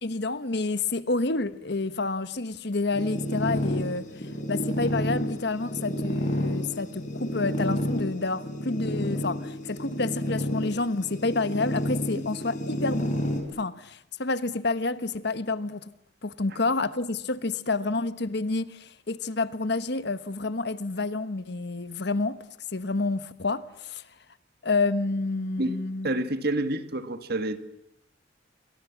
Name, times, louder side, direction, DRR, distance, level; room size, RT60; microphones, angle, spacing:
voice 1, 0.0-4.1 4.5-13.2 13.5-15.9 16.2-22.4 22.7-24.0 24.6-26.1, left 3 dB, 60° left, 1.2 m, -29 dB
sound 1, 2.9-13.4, equal, 40° left, 6.3 m, -30 dB
voice 2, 26.0-27.6, right 1 dB, 55° right, 2.0 m, -28 dB
29.0 x 25.0 x 7.3 m
head